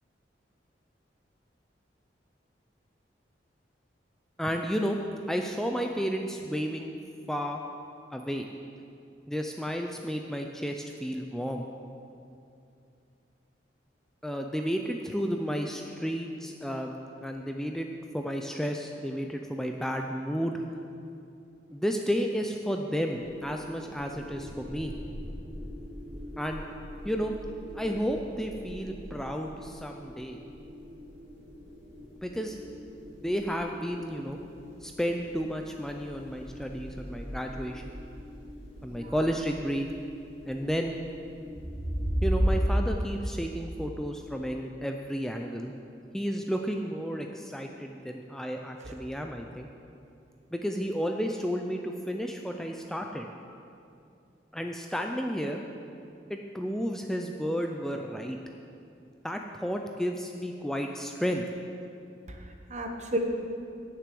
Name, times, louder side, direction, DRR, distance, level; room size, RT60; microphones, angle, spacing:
voice 1, 4.4-5.0 5.3-6.9 7.3-7.6 8.1-8.5 9.3-11.6 14.2-17.0 17.2-17.9 18.1-20.8 21.7-24.9 26.4-26.6 27.0-27.3 27.7-30.4 32.2-32.6 33.2-34.4 34.8-37.8 38.8-39.9 40.4-40.9 42.2-45.7 46.1-49.7 50.5-53.6 54.5-55.6 56.3-58.4 59.2-61.4, equal, 5° left, 3 dB, 0.4 m, -32 dB
sound 1, 23.1-42.6, equal, 35° left, 2.4 m, -38 dB
voice 2, 38.8-39.1 48.8-48.9 62.3-63.2, right 1 dB, 40° right, 3 dB, 1.0 m, -34 dB
9.1 x 6.8 x 7.6 m, 2.6 s
head